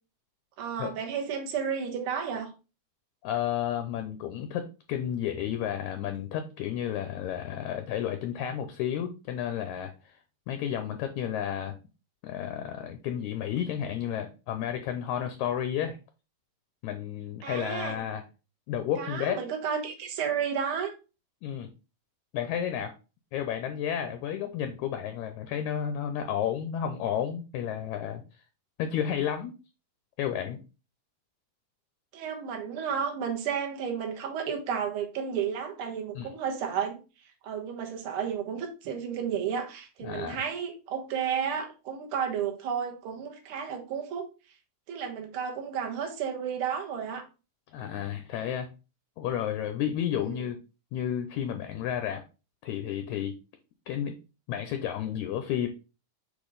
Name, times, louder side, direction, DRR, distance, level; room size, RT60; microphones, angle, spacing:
voice 1, 0.6-2.5 17.4-18.0 19.0-20.9 32.1-37.0 37.4-44.3 44.9-47.3 50.2-50.4, right 7 dB, 60° right, 3 dB, 1.4 m, -32 dB
voice 2, 3.2-9.9 10.5-11.7 12.2-16.0 16.8-18.2 18.7-19.4 21.4-21.7 22.3-22.9 23.3-28.2 28.8-29.5 30.2-30.6 36.1-36.3 40.0-40.4 47.7-48.7 49.2-50.6 50.9-52.2 52.6-53.3 53.9-54.2 54.5-55.7, left 9 dB, 80° left, 7 dB, 1.7 m, -31 dB
8.3 x 3.2 x 3.9 m, 0.31 s
omnidirectional pair, 4.0 m